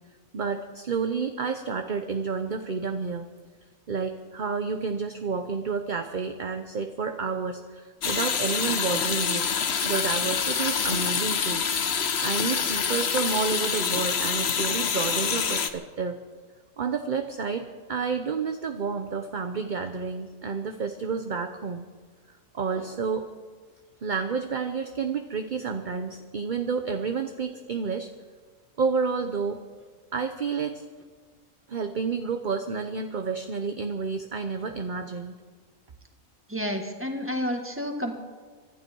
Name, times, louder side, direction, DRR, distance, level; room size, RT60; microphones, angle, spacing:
voice 1, 0.3-3.3 3.9-9.5 9.8-11.6 12.2-16.2 16.8-21.9 22.5-23.3 24.0-28.1 28.8-29.6 30.1-30.8 31.7-35.4, right 5 dB, 40° right, 6 dB, 0.8 m, -30 dB
sound 1, 8.0-15.7, left 6 dB, 50° left, 1.1 m, -26 dB
voice 2, 36.5-38.1, equal, 10° right, 3 dB, 1.8 m, -30 dB
25.0 x 12.0 x 4.6 m, 1.5 s
omnidirectional pair, 1.5 m